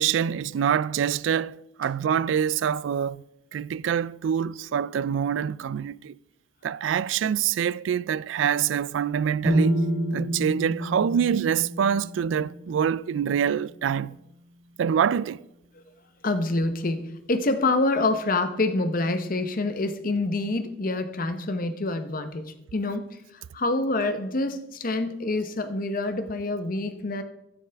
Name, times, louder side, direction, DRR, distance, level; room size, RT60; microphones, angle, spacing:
voice 1, 0.0-3.2 3.5-6.2 6.6-9.8 10.1-14.2 14.8-15.4, right 8 dB, 75° right, 0.3 m, -25 dB
sound 1, 9.5-13.4, right 1 dB, 15° right, 1.3 m, -28 dB
voice 2, 16.2-27.2, left 2 dB, 45° left, 0.9 m, -27 dB
12.0 x 9.7 x 3.4 m
head